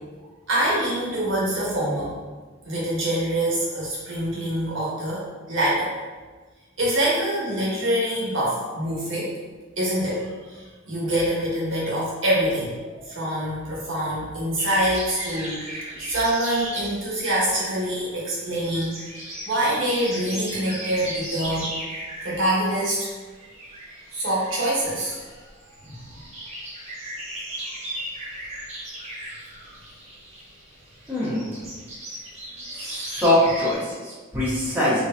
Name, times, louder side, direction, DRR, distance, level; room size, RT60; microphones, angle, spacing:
voice 1, 0.5-2.1 2.6-5.9 6.8-9.3 9.8-19.1 19.4-21.7 22.2-23.1 24.1-25.2 25.8-26.0, right 1 dB, 70° right, -6 dB, 1.2 m, -25 dB
sound 1, 14.6-33.7, right 1 dB, 35° right, 1.0 m, -37 dB
voice 2, 31.1-31.5 32.7-35.1, left 1 dB, 10° right, -10 dB, 1.3 m, -23 dB
3.9 x 3.2 x 2.7 m, 1.4 s
head